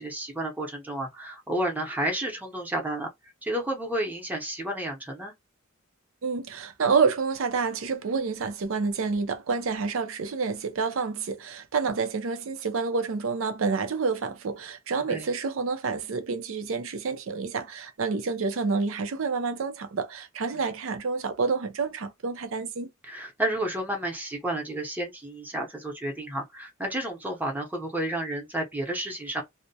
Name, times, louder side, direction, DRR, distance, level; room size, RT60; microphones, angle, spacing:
voice 1, 0.0-3.1 3.4-5.3 15.1-15.3 20.5-20.6 23.0-29.4, right 1 dB, 10° right, 0.7 m, -31 dB
voice 2, 6.2-22.9, right 4 dB, 75° right, 0.5 m, -28 dB
2.2 x 2.1 x 2.7 m
head